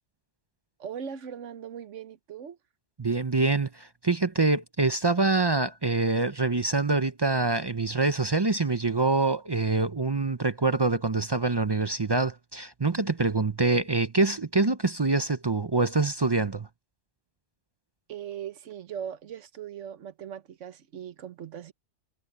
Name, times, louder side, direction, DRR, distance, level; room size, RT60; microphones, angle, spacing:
voice 1, 0.8-2.6 18.1-21.7, right 8 dB, 85° right, 1.3 m, -39 dB
voice 2, 3.0-16.7, right 3 dB, 30° right, 0.5 m, -25 dB
omnidirectional pair, 1.2 m